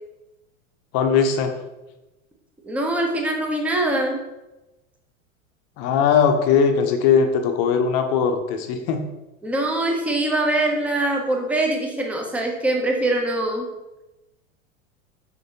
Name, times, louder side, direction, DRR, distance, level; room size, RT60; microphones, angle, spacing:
voice 1, 0.9-1.5 5.8-9.0, left 6 dB, 40° left, 6 dB, 0.6 m, -19 dB
voice 2, 2.6-4.2 9.4-13.7, right 1 dB, 5° right, 1 dB, 0.4 m, -23 dB
4.8 x 3.3 x 2.7 m, 1.0 s
hypercardioid pair, 95°, 42 cm